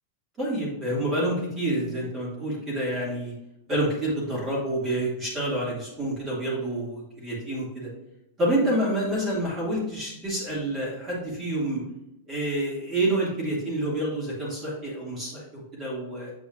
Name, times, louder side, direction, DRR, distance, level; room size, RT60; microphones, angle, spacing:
voice 1, 0.4-3.3 3.7-7.9 8.4-11.8 12.3-16.3, right 1 dB, 20° right, -5 dB, 2.3 m, -28 dB
7.6 x 5.0 x 2.5 m, 0.88 s
supercardioid pair, 160°, 0 cm